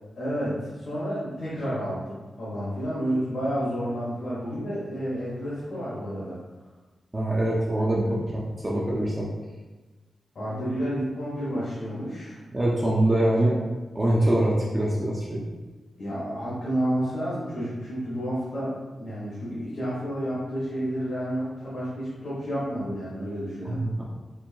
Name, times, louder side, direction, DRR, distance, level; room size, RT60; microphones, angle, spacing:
voice 1, 0.2-6.4 7.8-8.2 10.3-12.4 13.4-13.5 16.0-18.7 19.0-23.8, equal, 55° left, -9 dB, 1.2 m, -30 dB
voice 2, 7.1-9.3 12.5-13.5 13.9-15.4 23.6-24.0, right 1 dB, 20° right, -5 dB, 0.5 m, -24 dB
4.5 x 2.6 x 2.7 m, 1.2 s
wide cardioid pair, 165°, 0 cm